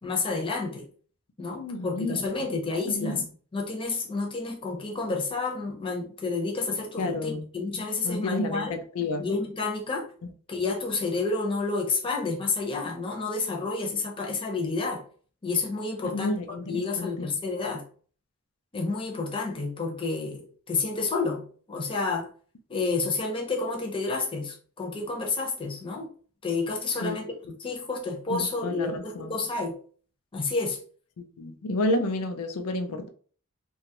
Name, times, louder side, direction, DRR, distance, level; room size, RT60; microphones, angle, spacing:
voice 1, 0.0-0.9 1.4-3.2 3.5-8.8 9.2-10.1 10.5-15.0 15.4-16.3 16.6-17.8 18.7-22.3 22.7-26.1 26.4-27.3 27.6-29.7 30.3-30.8, left 3 dB, 25° left, 0.6 m, -30 dB
voice 2, 1.5-2.5 2.9-3.2 7.0-7.5 7.7-9.2 16.1-17.3 27.0-27.2 28.3-29.4 31.4-33.1, left 2 dB, 90° left, 0.4 m, -31 dB
2.9 x 2.3 x 2.8 m
head